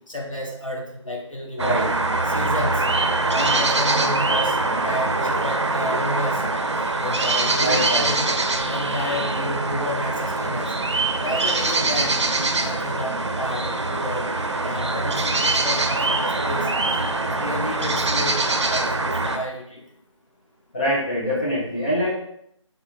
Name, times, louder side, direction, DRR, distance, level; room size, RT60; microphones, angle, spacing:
voice 1, 0.1-1.9 2.2-2.8 3.3-4.6 4.8-6.4 6.9-8.2 8.7-10.7 11.2-12.3 12.6-14.3 14.6-16.7 17.3-18.4 18.7-19.8, left 1 dB, 80° left, -1 dB, 0.9 m, -31 dB
sound 1, 1.6-19.4, right 2 dB, 60° right, 0.4 m, -23 dB
voice 2, 7.6-8.1 20.7-22.1, equal, 20° left, -9 dB, 0.7 m, -24 dB
3.8 x 2.1 x 3.1 m, 0.72 s
figure-of-eight pair, 160°, 16 cm